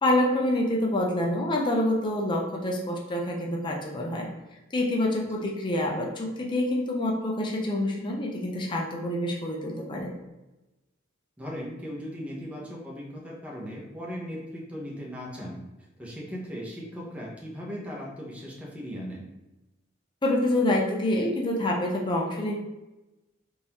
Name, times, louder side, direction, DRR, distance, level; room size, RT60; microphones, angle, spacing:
voice 1, 0.0-4.3 4.7-10.1 20.2-22.6, left 1 dB, 25° left, -1 dB, 0.5 m, -27 dB
voice 2, 11.4-15.6 16.0-19.2, equal, 5° right, -4 dB, 0.8 m, -38 dB
3.7 x 2.6 x 2.9 m, 1.0 s
head